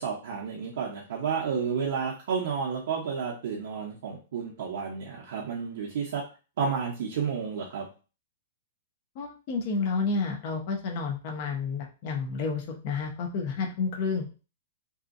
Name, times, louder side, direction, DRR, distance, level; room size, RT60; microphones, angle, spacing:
voice 1, 0.0-6.2 6.6-7.9, right 6 dB, 65° right, -3 dB, 0.7 m, -31 dB
voice 2, 9.2-14.4, left 4 dB, 45° left, 1 dB, 0.6 m, -30 dB
2.7 x 2.5 x 2.5 m, 0.34 s
hypercardioid pair, 145°, 0 cm